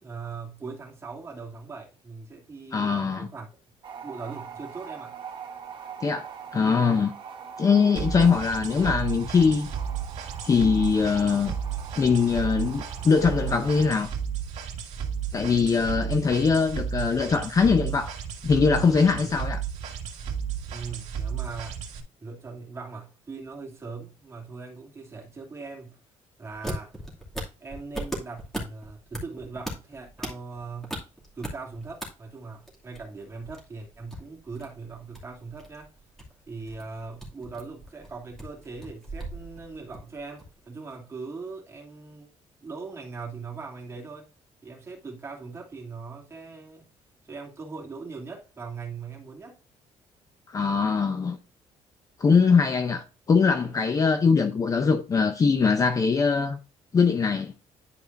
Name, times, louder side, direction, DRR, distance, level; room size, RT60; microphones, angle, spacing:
voice 1, 0.0-3.5 4.0-5.2 19.2-19.3 20.7-21.9 22.2-26.0 26.4-26.9 27.6-31.0 31.3-35.9 36.5-42.3 42.6-44.3 44.6-46.9 47.2-49.6, right 4 dB, 20° right, 2.7 m, -40 dB
voice 2, 2.7-3.3 6.0-7.1 7.6-9.7 10.4-11.6 12.0-14.1 15.3-18.1 18.4-19.6 50.5-51.4 52.2-56.6 56.9-57.5, left 5 dB, 30° left, 0.7 m, -22 dB
sound 1, 3.8-14.1, right 6 dB, 45° right, 1.5 m, -43 dB
sound 2, 7.9-22.0, right 7 dB, 75° right, 1.7 m, -33 dB
sound 3, 26.6-32.1 32.3-40.6, right 1 dB, 5° left, 2.5 m, -38 dB
11.0 x 4.9 x 2.6 m
cardioid pair, 150°, 12 cm